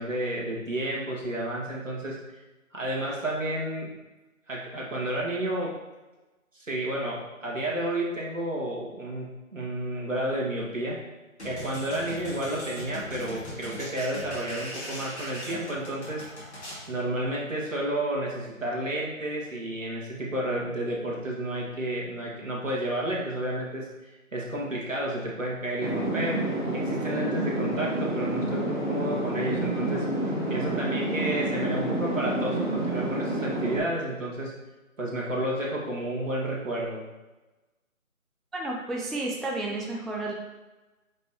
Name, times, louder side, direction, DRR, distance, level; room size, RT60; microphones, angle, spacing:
voice 1, 0.0-2.2 2.7-3.9 4.5-5.8 6.5-11.0 11.4-16.2 16.9-26.4 26.7-30.1 30.5-34.5 35.0-37.0, right 1 dB, 60° right, -4 dB, 2.0 m, -31 dB
sound 1, 11.4-16.9, equal, 50° left, 2.0 m, -39 dB
sound 2, 25.8-33.8, right 1 dB, 35° left, 0.8 m, -29 dB
voice 2, 38.5-40.3, right 2 dB, ahead, -2 dB, 0.4 m, -31 dB
7.4 x 5.3 x 2.9 m, 1.1 s
figure-of-eight pair, 180°, 43 cm